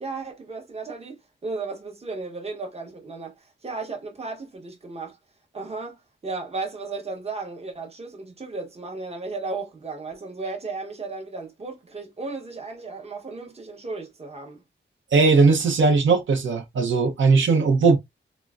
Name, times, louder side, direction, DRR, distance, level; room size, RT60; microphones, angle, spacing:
voice 1, 0.0-5.2 5.5-14.6 15.1-15.3, right 3 dB, 30° right, 0.9 m, -35 dB
voice 2, 15.1-18.0, right 4 dB, 80° right, 0.8 m, -18 dB
3.8 x 2.1 x 2.2 m
wide cardioid pair, 130°, 20 cm